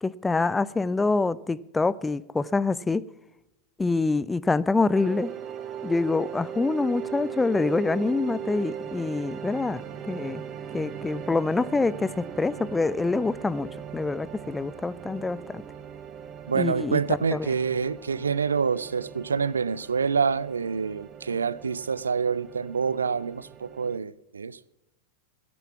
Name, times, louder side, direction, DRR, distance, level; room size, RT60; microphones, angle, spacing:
voice 1, 0.0-3.0 3.8-5.3 5.8-9.8 10.1-10.4 10.7-15.6 16.5-17.5, left 3 dB, 10° left, 0.4 m, -26 dB
sound 1, 4.9-24.0, right 8 dB, 30° right, 1.1 m, -39 dB
voice 2, 16.5-24.6, right 5 dB, 75° right, 0.4 m, -27 dB
16.5 x 6.9 x 7.2 m
figure-of-eight pair, 90°, 0 cm